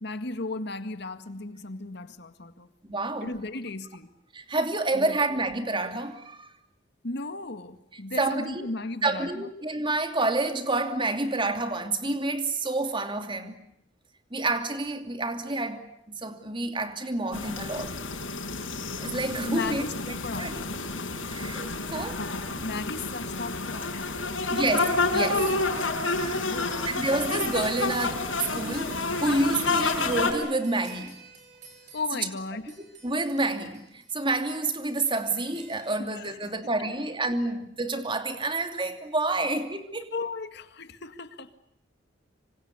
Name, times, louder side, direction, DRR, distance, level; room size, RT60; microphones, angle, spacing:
voice 1, 0.0-2.7 3.2-4.1 4.9-5.2 7.0-9.5 19.4-20.8 22.6-24.7 25.3-25.6 26.4-26.9 31.9-32.7 36.0-36.4 36.8-36.9 40.1-41.5, left 3 dB, 60° left, 2.0 m, -36 dB
voice 2, 2.8-3.3 4.3-6.5 8.2-8.7 9.0-13.6 14.3-15.8 16.1-17.9 19.0-20.5 21.3-22.2 24.5-25.5 26.9-31.2 33.0-40.1, right 2 dB, 25° right, 2.7 m, -29 dB
sound 1, 17.3-30.3, left 3 dB, 90° left, 5.5 m, -29 dB
sound 2, 25.2-36.0, right 5 dB, 40° right, 6.4 m, -51 dB
26.5 x 25.5 x 8.3 m
head